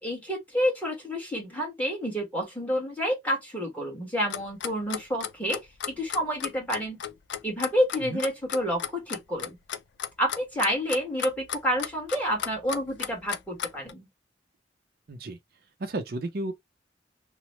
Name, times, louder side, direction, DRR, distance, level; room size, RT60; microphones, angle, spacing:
voice 1, 0.0-5.6 5.9-7.0 7.4-9.6 10.2-14.1, equal, 10° left, 1.3 m, -29 dB
Clock, 4.3-13.9, left 9 dB, 80° left, 0.4 m, -34 dB
voice 2, 15.8-16.5, right 2 dB, 55° right, 0.5 m, -32 dB
2.9 x 2.1 x 3.0 m
head